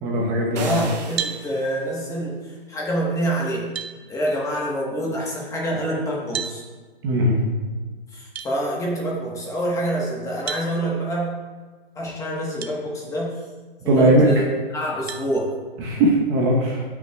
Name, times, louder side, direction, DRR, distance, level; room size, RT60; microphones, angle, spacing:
voice 1, 0.0-0.8 7.0-7.4 13.9-14.3 15.8-16.8, right 1 dB, 25° right, -2 dB, 0.9 m, -19 dB
voice 2, 0.5-3.6 4.1-6.6 8.1-11.3 11.9-13.4 13.8-14.4 14.7-15.5, right 1 dB, 10° left, -3 dB, 1.2 m, -26 dB
sound 1, 0.6-1.8, right 5 dB, 45° right, 1.2 m, -37 dB
sound 2, 1.2-1.4 3.1-3.2 3.7-4.0 6.3-6.6 8.3-8.5 10.5-10.7 12.6-12.7 13.4-13.5 15.1-15.3, right 7 dB, 85° right, 0.8 m, -30 dB
15.0 x 5.8 x 2.3 m, 1.4 s
hypercardioid pair, 150°, 31 cm